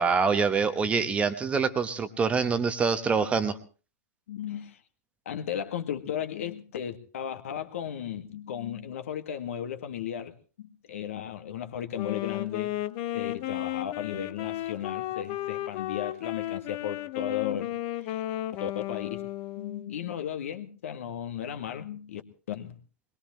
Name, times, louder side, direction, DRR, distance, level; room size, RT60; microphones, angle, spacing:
voice 1, 0.0-3.6, right 5 dB, 15° right, 11 dB, 1.1 m, -25 dB
voice 2, 4.3-4.8 5.3-10.3 10.6-12.7 13.1-18.2 18.6-19.2 19.6-22.2 22.5-22.8, left 9 dB, 55° left, 8 dB, 1.9 m, -35 dB
Wind instrument woodwind instrument, 11.9-20.0, left 14 dB, 35° left, 1.1 m, -34 dB
21.5 x 21.5 x 3.1 m, 0.36 s
figure-of-eight pair, 110°, 9 cm